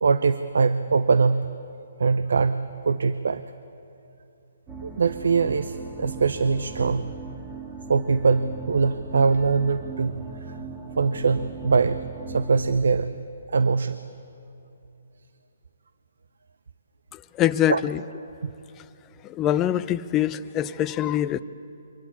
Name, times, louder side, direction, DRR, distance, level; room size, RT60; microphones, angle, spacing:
voice 1, 0.0-1.5 2.0-3.4 4.8-7.1 7.9-10.6 10.9-13.1 13.5-14.0 17.7-17.8 18.4-18.5, right 4 dB, 70° right, 13 dB, 0.6 m, -22 dB
sound 1, 4.7-12.7, right 4 dB, 15° right, 2.8 m, -39 dB
voice 2, 17.4-18.0 19.3-21.4, left 11 dB, 20° left, 12 dB, 0.6 m, -24 dB
23.5 x 19.5 x 8.4 m, 2.8 s
figure-of-eight pair, 135°, 0 cm